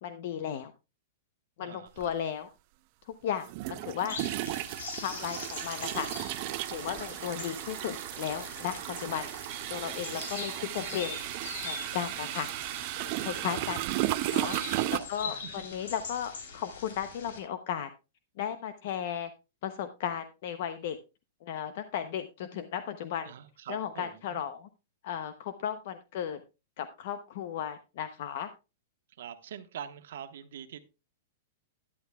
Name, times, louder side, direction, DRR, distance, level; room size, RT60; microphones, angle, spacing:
voice 1, 0.0-0.7 1.6-2.5 3.0-4.2 5.0-6.1 6.7-9.3 9.7-11.2 11.6-12.5 13.0-13.8 14.3-14.6 14.9-17.9 18.4-19.3 19.6-21.0 21.4-23.3 23.7-24.7 25.0-26.4 26.8-28.5, left 9 dB, 45° left, 10 dB, 0.7 m, -35 dB
voice 2, 1.6-2.1 10.0-10.2 14.4-15.6 23.3-24.4 29.2-30.8, right 9 dB, 65° right, 9 dB, 1.1 m, -45 dB
sound 1, 2.0-2.1 3.5-15.0, right 17 dB, 35° right, 0.4 m, -35 dB
sound 2, 4.1-17.4, left 5 dB, 75° left, 3.4 m, -43 dB
11.5 x 11.0 x 2.2 m, 0.28 s
supercardioid pair, 170°, 0 cm